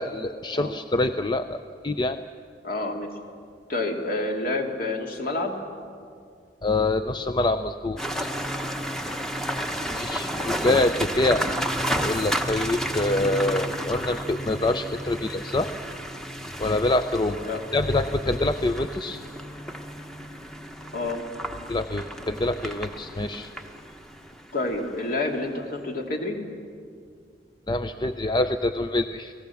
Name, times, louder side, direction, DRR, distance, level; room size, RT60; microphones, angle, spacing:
voice 1, 0.0-2.2 6.6-8.3 9.9-11.5 11.8-15.7 16.6-19.2 21.7-23.5 27.7-29.3, left 2 dB, 25° left, 10 dB, 0.5 m, -25 dB
voice 2, 2.6-3.1 3.7-5.6 9.8-10.0 17.3-17.6 20.9-21.2 24.5-26.4, left 2 dB, 55° left, 2 dB, 2.7 m, -28 dB
sound 1, 8.0-25.1, equal, 5° left, 1.0 m, -32 dB
30.0 x 18.0 x 7.1 m, 2.2 s
head